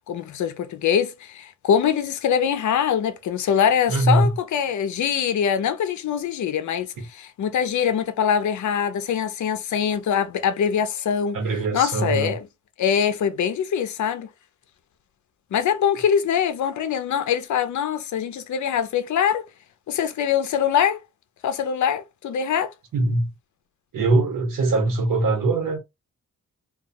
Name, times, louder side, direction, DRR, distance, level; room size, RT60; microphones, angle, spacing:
voice 1, 0.1-11.4 11.7-12.4 12.8-14.3 15.5-19.5 19.9-21.0 21.4-22.7, left 8 dB, 65° left, 0.5 m, -23 dB
voice 2, 3.9-4.3 7.0-7.1 11.3-12.4 22.9-23.3 23.9-25.8, right 2 dB, 85° right, 1.1 m, -21 dB
2.3 x 2.2 x 2.7 m
wide cardioid pair, 115°, 31 cm